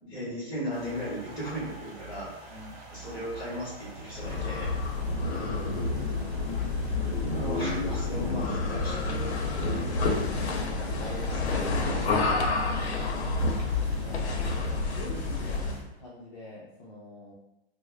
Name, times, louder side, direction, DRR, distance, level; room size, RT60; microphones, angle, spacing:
voice 1, 0.0-2.6 2.9-4.7 7.2-8.9 10.6-12.3, equal, 10° left, -8 dB, 1.3 m, -36 dB
sound 1, 0.7-15.8, right 2 dB, 45° right, 0.6 m, -48 dB
voice 2, 2.5-2.8 5.2-6.4 8.1-10.8 12.3-12.7 14.0-17.3, left 2 dB, 45° left, -5 dB, 0.6 m, -43 dB
sound 2, 4.1-15.9, left 3 dB, 80° left, 0.7 m, -29 dB
3.1 x 2.1 x 3.4 m, 0.92 s
hypercardioid pair, 175°, 32 cm